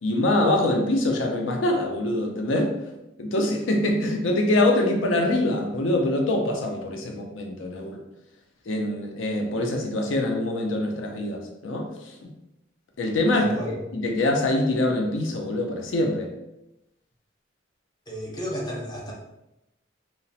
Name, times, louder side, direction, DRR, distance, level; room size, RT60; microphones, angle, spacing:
voice 1, 0.0-2.7 3.2-8.0 8.7-12.3 13.0-13.5 13.9-16.3, left 1 dB, 80° left, 2 dB, 0.5 m, -24 dB
voice 2, 13.3-13.8 18.1-19.1, equal, 20° left, -3 dB, 0.6 m, -32 dB
2.9 x 2.0 x 2.7 m, 0.90 s
head